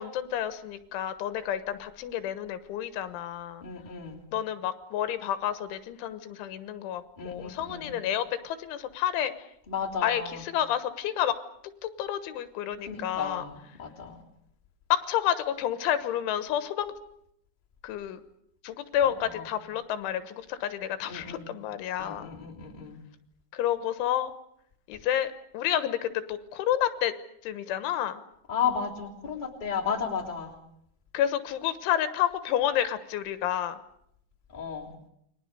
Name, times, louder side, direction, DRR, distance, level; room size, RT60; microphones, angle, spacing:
voice 1, 0.0-3.6 4.3-9.3 10.0-11.4 11.8-13.4 14.9-16.9 17.8-18.2 18.6-22.3 23.5-24.3 24.9-27.1 27.4-28.2 31.1-33.8, left 11 dB, 85° left, 12 dB, 3.6 m, -30 dB
voice 2, 3.6-4.2 7.2-8.0 9.7-10.4 12.8-14.2 19.0-19.5 21.0-21.4 22.0-23.0 24.9-25.0 28.5-30.5 34.5-34.9, left 6 dB, 10° left, -1 dB, 2.5 m, -34 dB
29.0 x 22.5 x 6.7 m, 0.74 s
omnidirectional pair, 5.4 m